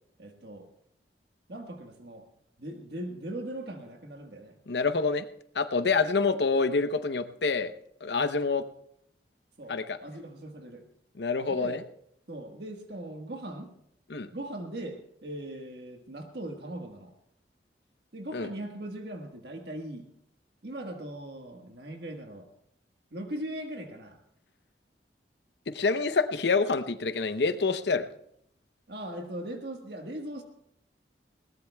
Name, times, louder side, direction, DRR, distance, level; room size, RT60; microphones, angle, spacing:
voice 1, 0.2-0.7 1.5-2.3 2.6-4.6 5.8-5.9 9.6-10.8 11.5-11.8 12.3-13.7 14.3-17.1 18.1-20.1 20.6-22.5 23.1-24.2 28.9-30.4, right 1 dB, 65° right, 3 dB, 1.4 m, -39 dB
voice 2, 4.7-5.2 5.5-7.7 8.0-8.6 9.7-10.0 11.2-11.8 14.1-14.3 18.3-18.5 25.7-28.1, left 4 dB, 70° left, 11 dB, 0.8 m, -27 dB
21.0 x 18.0 x 2.3 m, 0.74 s
head